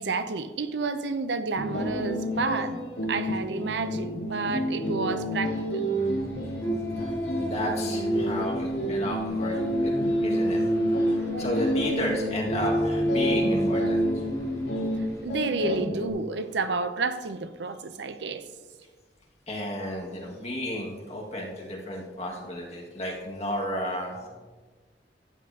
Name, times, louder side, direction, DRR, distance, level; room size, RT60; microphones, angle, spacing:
voice 1, 0.0-5.8 11.3-11.7 15.2-18.5, right 4 dB, 75° right, 0.6 m, -31 dB
sound 1, 1.5-16.1, equal, 85° left, 3.2 m, -30 dB
sound 2, 5.9-15.2, right 1 dB, 15° left, 3.0 m, -29 dB
voice 2, 7.0-9.9 10.2-10.6 11.1-14.2 19.5-24.3, left 1 dB, 40° left, 1.9 m, -33 dB
sound 3, 11.1-14.9 15.3-17.3, equal, 65° left, 1.4 m, -45 dB
12.5 x 8.5 x 2.8 m
head